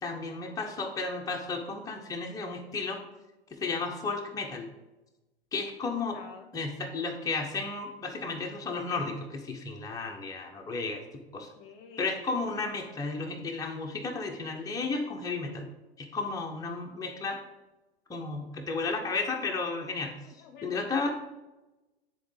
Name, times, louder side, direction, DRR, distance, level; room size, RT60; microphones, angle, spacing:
voice 1, 0.0-3.0 3.6-4.7 5.5-6.2 6.5-11.0 11.3-11.5 12.0-15.7 16.0-17.4 18.1-20.1 20.6-21.1, left 3 dB, 10° left, 1 dB, 0.9 m, -33 dB
voice 2, 5.8-6.5 11.3-12.2 20.2-21.1, left 5 dB, 45° left, 6 dB, 0.8 m, -51 dB
10.0 x 3.8 x 3.3 m, 1.0 s
figure-of-eight pair, 95°, 32 cm